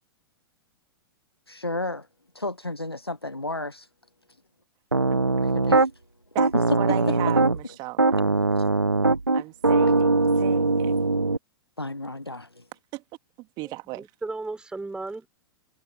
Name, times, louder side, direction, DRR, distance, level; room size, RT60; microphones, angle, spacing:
voice 1, 1.5-2.1 2.3-3.9 5.5-5.9 8.6-8.7 11.8-12.7, left 2 dB, 85° left, 1.1 m, -33 dB
Piano, 4.9-5.9 6.4-7.6 8.0-11.4, right 3 dB, 85° right, 1.1 m, -21 dB
voice 2, 5.1-5.5 6.3-8.4 9.3-10.9 12.9-13.0 13.4-14.1, right 21 dB, 35° right, 2.5 m, -36 dB
voice 3, 13.6-15.3, right 3 dB, 5° right, 5.5 m, -35 dB
figure-of-eight pair, 100°, 13 cm